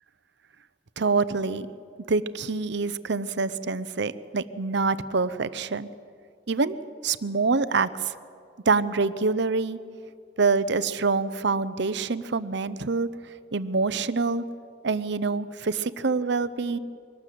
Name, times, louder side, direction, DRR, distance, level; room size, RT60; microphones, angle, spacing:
voice 1, 1.0-1.7 2.1-5.9 6.5-6.8 7.0-8.1 8.7-9.8 10.4-13.1 13.5-14.4 14.8-16.8, right 4 dB, 65° right, 14 dB, 0.7 m, -26 dB
23.5 x 19.0 x 7.7 m, 2.3 s
head